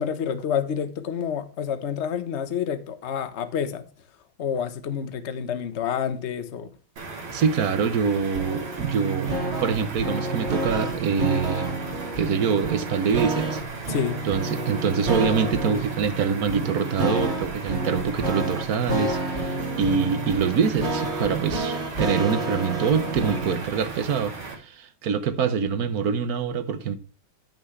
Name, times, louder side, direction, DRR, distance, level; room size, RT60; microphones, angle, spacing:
voice 1, 0.0-3.9 4.4-6.7 13.9-14.2, left 8 dB, 40° left, 1.1 m, -28 dB
sound 1, 7.0-24.5, right 3 dB, 85° right, 3.5 m, -37 dB
voice 2, 7.3-9.3 9.6-11.8 12.2-13.6 14.2-27.0, right 6 dB, 55° right, 1.3 m, -25 dB
sound 2, 8.3-23.6, right 2 dB, 35° right, 2.0 m, -29 dB
14.5 x 6.2 x 3.3 m
omnidirectional pair, 2.2 m